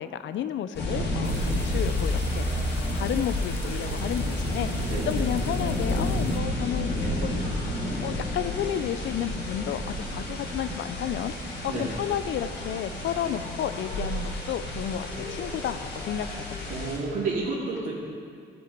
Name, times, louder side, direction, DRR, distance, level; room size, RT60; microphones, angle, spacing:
voice 1, 0.0-4.7 5.1-7.4 8.0-16.6, left 10 dB, 70° left, 12 dB, 0.5 m, -32 dB
sound 1, 0.7-17.0, left 1 dB, 55° left, 2.4 m, -31 dB
sound 2, 1.2-6.4, left 3 dB, 10° left, 0.3 m, -33 dB
voice 2, 16.7-17.9, right 3 dB, 70° right, -9 dB, 2.6 m, -30 dB
12.5 x 6.1 x 5.3 m, 2.3 s
cardioid pair, 90°, 20 cm